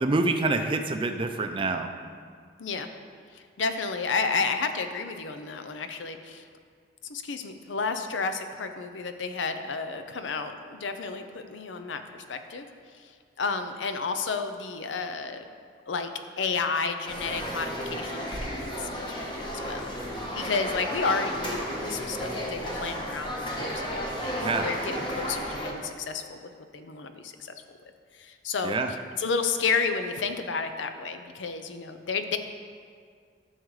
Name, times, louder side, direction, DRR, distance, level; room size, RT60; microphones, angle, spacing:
voice 1, 0.0-1.9 24.4-24.7 28.6-28.9, right 3 dB, 30° right, 6 dB, 0.5 m, -26 dB
voice 2, 3.3-6.4 7.1-12.7 13.4-15.4 15.9-16.1 16.4-19.9 20.3-27.3 28.2-28.8 29.2-32.4, left 4 dB, 80° left, 8 dB, 0.6 m, -31 dB
sound 1, 17.0-25.7, equal, 25° left, 1.1 m, -33 dB
13.0 x 6.4 x 3.2 m, 2.1 s
head